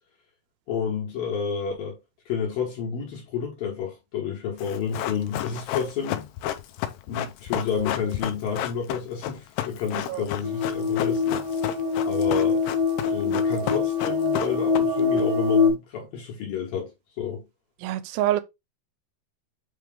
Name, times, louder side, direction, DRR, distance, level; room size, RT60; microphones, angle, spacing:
voice 1, 0.7-2.0 2.3-6.3 7.1-11.4 12.0-12.6 13.1-16.9 17.2-17.4, left 6 dB, 65° left, 2.9 m, -30 dB
Run, 4.6-15.2 15.5-15.6, left 12 dB, 85° left, 2.6 m, -32 dB
voice 2, 9.9-10.3 17.8-18.4, right 13 dB, 80° right, 2.3 m, -26 dB
sound 1, 10.4-15.7, left 5 dB, 15° right, 0.8 m, -24 dB
8.4 x 3.1 x 3.6 m
omnidirectional pair, 4.8 m